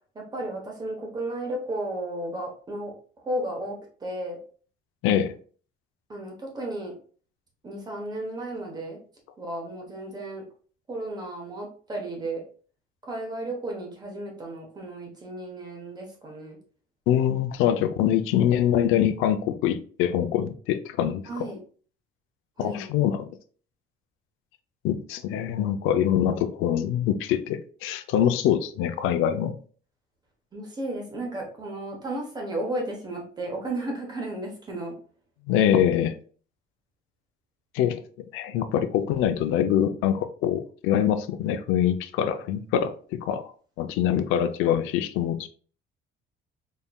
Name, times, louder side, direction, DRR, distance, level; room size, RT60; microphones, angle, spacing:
voice 1, 0.1-2.9 3.2-3.8 4.0-4.4 6.1-6.9 7.6-9.0 9.4-10.4 10.9-12.4 13.0-16.6 21.2-21.6 22.6-22.8 30.5-34.9, right 1 dB, 20° right, 1.0 m, -33 dB
voice 2, 5.0-5.3 17.1-21.4 22.6-23.3 24.8-29.6 35.5-36.1 37.7-38.0 38.3-43.5 43.8-45.5, left 10 dB, 90° left, 0.5 m, -24 dB
4.2 x 3.5 x 2.3 m
cardioid pair, 175°, 20 cm